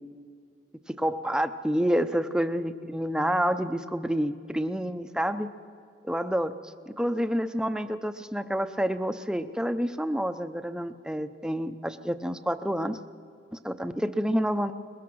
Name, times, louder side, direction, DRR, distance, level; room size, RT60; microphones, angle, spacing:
voice 1, 1.0-5.5 6.0-13.0 13.5-14.7, equal, 5° right, 9 dB, 0.7 m, -28 dB
22.5 x 21.0 x 6.3 m, 2.3 s
head